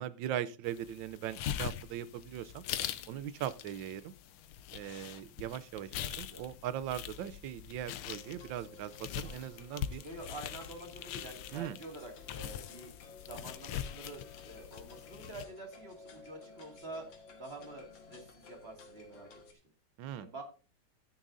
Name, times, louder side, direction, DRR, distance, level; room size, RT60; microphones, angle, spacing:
voice 1, 0.0-2.6 3.1-4.1 4.7-10.0 11.5-11.8 20.0-20.3, right 11 dB, 70° right, 1.3 m, -40 dB
sound 1, 0.6-15.4, left 10 dB, 85° left, 1.6 m, -43 dB
sound 2, 8.1-19.5, left 4 dB, 65° left, 2.2 m, -55 dB
voice 2, 10.0-12.9 13.2-17.0 17.4-19.6 20.2-20.4, right 2 dB, 30° right, 2.4 m, -47 dB
13.0 x 9.6 x 2.6 m
omnidirectional pair, 2.3 m